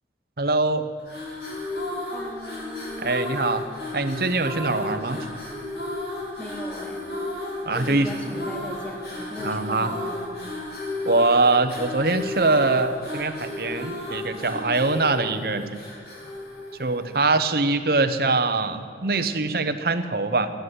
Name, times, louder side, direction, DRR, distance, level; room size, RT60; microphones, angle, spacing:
voice 1, 0.4-0.9 3.0-3.7 3.9-5.4 7.6-8.1 9.4-9.9 11.1-15.8 16.8-20.5, right 3 dB, 55° right, 9 dB, 0.9 m, -23 dB
sound 1, 1.0-17.4, left 1 dB, 65° left, 3.5 m, -33 dB
voice 2, 2.1-3.1 6.4-7.1 7.7-10.4, left 1 dB, 5° left, 2 dB, 1.7 m, -39 dB
13.5 x 10.5 x 8.2 m, 2.3 s
head